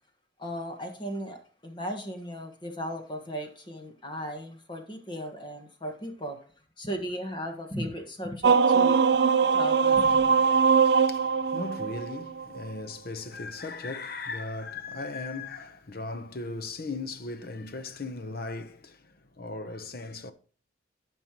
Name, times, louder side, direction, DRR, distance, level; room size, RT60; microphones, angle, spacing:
voice 1, 0.4-6.4 6.8-9.0 9.4-10.4, equal, 25° left, 1.5 m, -36 dB
sound 1, 8.4-12.7, right 5 dB, 60° right, 0.5 m, -22 dB
voice 2, 10.5-20.3, left 3 dB, 55° left, 0.8 m, -37 dB
14.5 x 5.5 x 2.9 m
head